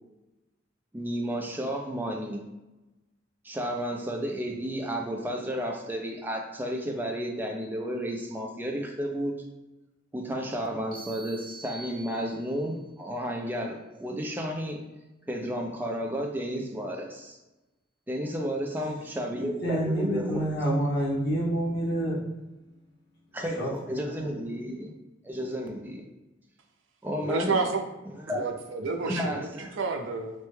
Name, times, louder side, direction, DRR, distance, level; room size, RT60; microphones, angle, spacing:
voice 1, 0.9-2.4 3.4-9.3 10.1-14.8 15.3-17.4 18.1-20.5 23.3-24.9 25.2-26.0 27.0-27.6 28.1-28.5 29.0-29.8, equal, 10° right, 2 dB, 0.4 m, -32 dB
sound 1, 10.9-12.8, right 3 dB, 50° right, 1.0 m, -46 dB
voice 2, 19.6-22.2 23.6-23.7 24.2-24.3, right 1 dB, 55° left, -6 dB, 1.0 m, -27 dB
voice 3, 27.2-27.8 28.3-29.5 29.8-30.3, right 4 dB, 80° right, 4 dB, 0.5 m, -29 dB
3.3 x 2.1 x 3.1 m, 1.0 s
head